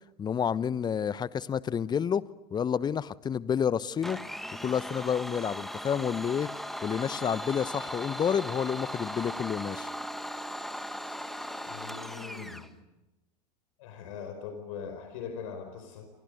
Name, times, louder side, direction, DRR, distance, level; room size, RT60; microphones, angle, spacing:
voice 1, 0.2-2.2 2.5-4.2 4.6-6.5 6.8-9.9, left 7 dB, 20° left, 19 dB, 1.0 m, -29 dB
Domestic sounds home sounds, 4.0-12.7, equal, ahead, 1.9 m, -38 dB
voice 2, 11.7-12.6 13.8-16.1, left 6 dB, 60° left, 7 dB, 5.1 m, -41 dB
29.0 x 28.5 x 6.5 m, 1.0 s
figure-of-eight pair, 85°, 19 cm